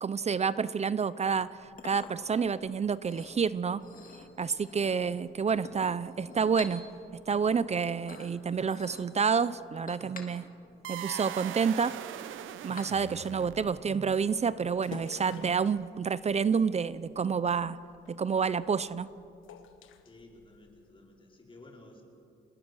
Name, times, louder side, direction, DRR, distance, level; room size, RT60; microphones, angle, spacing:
voice 1, 0.0-3.8 4.4-6.8 7.3-10.5 10.9-12.0 12.6-17.8 18.1-19.1, right 6 dB, 35° right, 17 dB, 0.6 m, -29 dB
Chink clink, 1.3-13.4, left 3 dB, 45° left, 2.9 m, -50 dB
sound 1, 10.8-14.0, right 12 dB, 85° right, 0.9 m, -41 dB
sound 2, 14.1-20.9, left 7 dB, 80° left, 1.5 m, -52 dB
voice 2, 20.0-22.0, left 2 dB, 25° left, 0 dB, 5.0 m, -53 dB
27.0 x 20.0 x 6.3 m, 2.6 s
cardioid pair, 90°, 20 cm